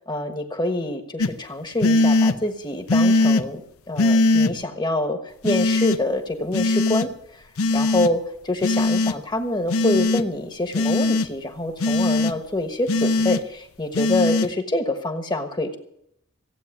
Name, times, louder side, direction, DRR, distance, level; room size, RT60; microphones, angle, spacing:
voice 1, 0.1-3.6 3.9-7.1 7.7-15.8, left 2 dB, 20° left, 6 dB, 1.3 m, -26 dB
sound 1, 1.2-1.3 1.8-2.3 2.9-3.4 4.0-4.5 5.4-6.0 6.5-7.1 7.6-8.1 8.6-9.1 9.7-10.2 10.7-11.3 11.8-12.3 12.9-13.4 13.9-14.5, left 2 dB, 85° left, 0.8 m, -20 dB
16.0 x 8.8 x 7.4 m, 0.74 s
head